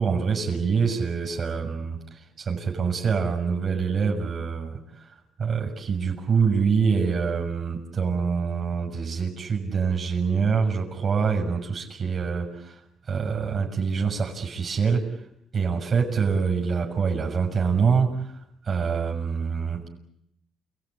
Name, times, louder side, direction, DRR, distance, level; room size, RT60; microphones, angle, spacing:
voice 1, 0.0-4.8 5.4-12.7 13.1-15.1 15.5-18.2 18.7-19.9, right 5 dB, 50° right, 1 dB, 6.6 m, -25 dB
30.0 x 18.5 x 9.9 m, 0.77 s
cardioid pair, 90°, 0 cm